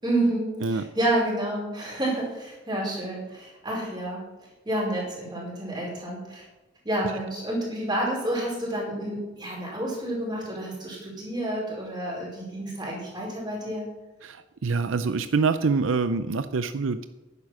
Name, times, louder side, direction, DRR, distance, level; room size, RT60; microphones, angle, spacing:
voice 1, 0.0-4.3 4.6-6.4 6.8-13.9, right 1 dB, 20° right, -3 dB, 5.0 m, -29 dB
voice 2, 14.2-17.0, right 4 dB, 75° right, 12 dB, 0.5 m, -25 dB
11.0 x 9.7 x 6.1 m, 1.1 s
head